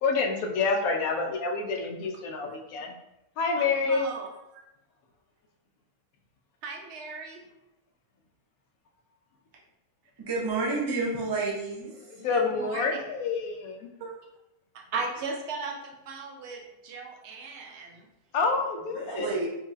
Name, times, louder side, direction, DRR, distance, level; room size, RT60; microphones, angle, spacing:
voice 1, 0.0-2.9 3.4-4.1 12.1-13.9 18.3-19.3, left 4 dB, 75° left, 3 dB, 1.0 m, -28 dB
voice 2, 3.6-4.3 4.5-4.7 6.6-7.4 12.2-13.0 14.0-14.2 14.7-18.1, right 4 dB, 70° right, 2 dB, 0.6 m, -37 dB
voice 3, 10.2-12.0 18.9-19.5, right 3 dB, 30° right, -4 dB, 0.4 m, -30 dB
4.6 x 2.7 x 2.4 m, 0.92 s
omnidirectional pair, 1.6 m